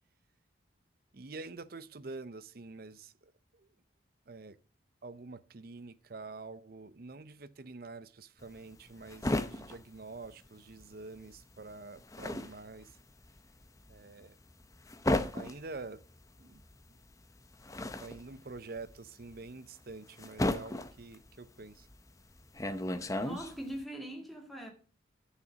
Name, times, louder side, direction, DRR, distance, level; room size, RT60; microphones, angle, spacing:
voice 1, 1.1-3.7 4.3-4.6 5.0-13.0 13.9-14.4 15.3-16.0 16.4-16.6 18.0-21.9, right 3 dB, 50° right, 0.6 m, -47 dB
sound 1, 8.4-10.9 11.2-23.8, left 1 dB, 15° left, 0.6 m, -36 dB
voice 2, 23.2-24.7, right 1 dB, ahead, 2.1 m, -41 dB
10.5 x 6.7 x 5.1 m
head